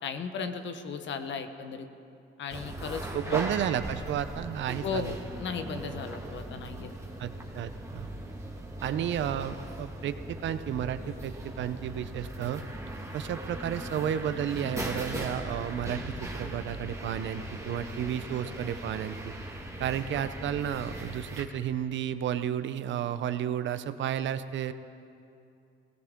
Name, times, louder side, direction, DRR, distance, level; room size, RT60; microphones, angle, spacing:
voice 1, 0.0-1.9 2.4-3.4 4.8-6.9, left 5 dB, 70° left, 8 dB, 1.0 m, -36 dB
sound 1, 2.5-21.5, right 1 dB, 15° right, 1.7 m, -39 dB
voice 2, 3.1-5.1 7.2-8.1 8.8-12.6 13.1-19.3 19.8-24.7, right 9 dB, 70° right, 12 dB, 0.7 m, -32 dB
18.0 x 17.5 x 3.6 m, 2.6 s
cardioid pair, 90°, 20 cm